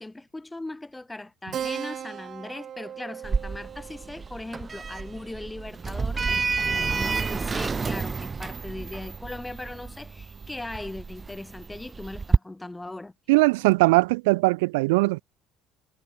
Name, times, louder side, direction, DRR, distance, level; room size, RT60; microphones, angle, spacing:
voice 1, 0.0-13.1, left 2 dB, 10° left, 3.2 m, -39 dB
Keyboard (musical), 1.5-6.5, right 9 dB, 50° right, 4.1 m, -39 dB
Sliding door, 3.2-12.4, right 4 dB, 30° right, 0.3 m, -29 dB
voice 2, 13.3-15.2, right 24 dB, 85° right, 0.7 m, -20 dB
supercardioid pair, 75°, 0 cm